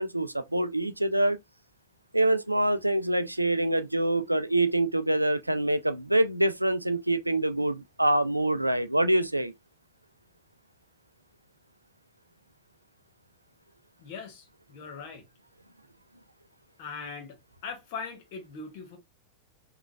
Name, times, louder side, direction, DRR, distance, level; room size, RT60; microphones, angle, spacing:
voice 1, 0.0-1.4 2.1-9.5, right 1 dB, 85° right, 0.3 m, -25 dB
voice 2, 14.0-15.2 16.8-17.4 17.6-19.0, left 5 dB, 45° left, 1.1 m, -40 dB
3.8 x 2.3 x 2.3 m
figure-of-eight pair, 90°, 0 cm